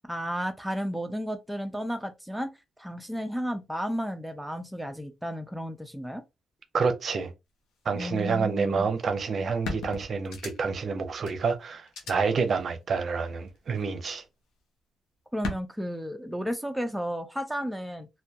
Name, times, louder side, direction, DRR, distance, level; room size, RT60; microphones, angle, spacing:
voice 1, 0.1-2.5 2.8-6.2 7.9-8.9 15.3-18.1, equal, ahead, 0.3 m, -33 dB
voice 2, 6.7-7.3 7.9-14.2, right 5 dB, 50° right, 0.5 m, -28 dB
sound 1, 9.0-9.1 9.6-10.9 11.3-11.4 11.9-12.1 13.5-13.9 15.4-15.6, left 3 dB, 85° left, 0.6 m, -36 dB
2.2 x 2.1 x 2.7 m
cardioid pair, 90°, 0 cm